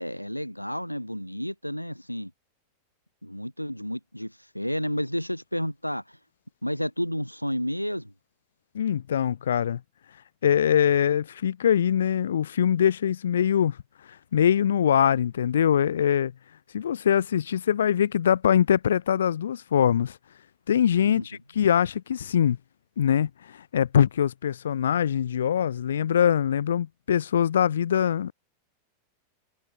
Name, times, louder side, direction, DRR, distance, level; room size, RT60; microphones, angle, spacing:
voice 1, 0.0-2.3 3.2-6.2 6.6-8.1 21.0-21.2, equal, 90° left, 1.0 m, -31 dB
voice 2, 8.7-9.8 10.4-13.8 14.3-16.3 16.7-20.2 20.7-22.6 23.0-28.3, left 9 dB, 65° left, 0.5 m, -23 dB
figure-of-eight pair, 90°, 0 cm